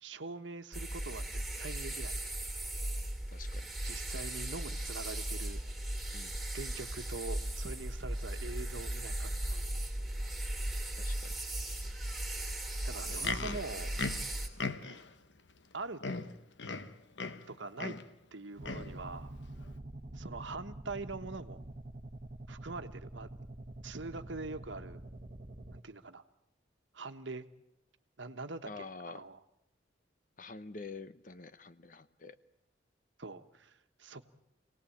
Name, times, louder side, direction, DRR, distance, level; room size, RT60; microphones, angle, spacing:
voice 1, 0.0-2.3 3.8-5.6 6.5-9.6 12.8-13.9 15.7-16.0 17.5-18.0 18.3-19.3 20.1-21.6 22.5-23.3 23.8-25.0 25.7-26.2 26.9-27.4 28.2-29.4 33.2-34.3, right 3 dB, 80° right, 8 dB, 1.3 m, -43 dB
sound 1, 0.7-14.5, right 1 dB, ahead, 2.8 m, -37 dB
voice 2, 3.3-3.7 6.1-6.4 11.0-11.3 28.7-29.2 30.4-32.3, left 4 dB, 45° left, 13 dB, 0.9 m, -47 dB
Livestock farm animals working animals, 12.9-15.1 15.7-15.8 16.0-17.5 17.8-18.1 18.6-19.0 19.7-19.8, left 4 dB, 70° left, 1.2 m, -38 dB
sound 2, 18.6-25.8, right 1 dB, 40° right, 1.2 m, -46 dB
26.5 x 18.5 x 8.7 m, 0.85 s
head